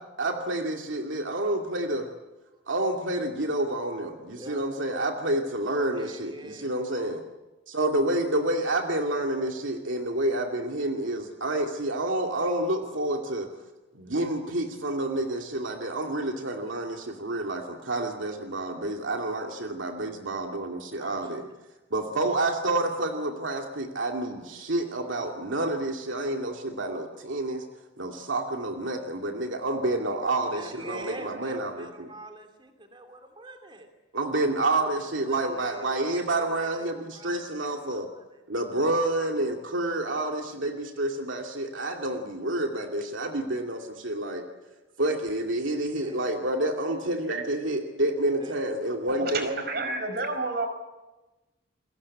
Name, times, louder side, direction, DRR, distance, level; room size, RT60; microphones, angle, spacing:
voice 1, 0.2-2.1 2.7-7.2 7.7-13.5 13.9-21.4 21.9-27.6 28.0-31.9 34.1-38.1 38.5-44.5 45.0-49.5, right 1 dB, 70° right, 2 dB, 2.5 m, -29 dB
voice 2, 4.3-4.7 5.9-6.7 20.9-21.6 30.5-33.9 34.9-38.4 46.0-46.2 48.4-48.6, right 1 dB, 25° right, 4 dB, 2.9 m, -45 dB
voice 3, 49.1-50.7, right 3 dB, 50° right, 8 dB, 4.9 m, -30 dB
30.0 x 22.0 x 8.6 m, 1.1 s
head